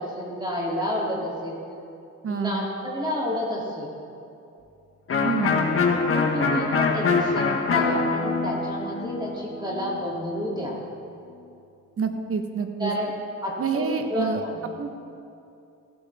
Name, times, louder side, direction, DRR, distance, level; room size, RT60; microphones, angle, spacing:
voice 1, 0.0-1.6 2.3-3.9 6.1-10.8 12.8-13.1 13.4-14.7, equal, 15° right, -4 dB, 3.0 m, -30 dB
voice 2, 2.2-2.6 5.2-5.6 12.0-12.9 13.6-14.4 14.8-14.9, right 5 dB, 45° right, 6 dB, 1.3 m, -27 dB
Electric guitar, 5.1-10.7, left 4 dB, 45° left, 1.6 m, -24 dB
15.5 x 11.5 x 3.6 m, 2.6 s
cardioid pair, 90°, 30 cm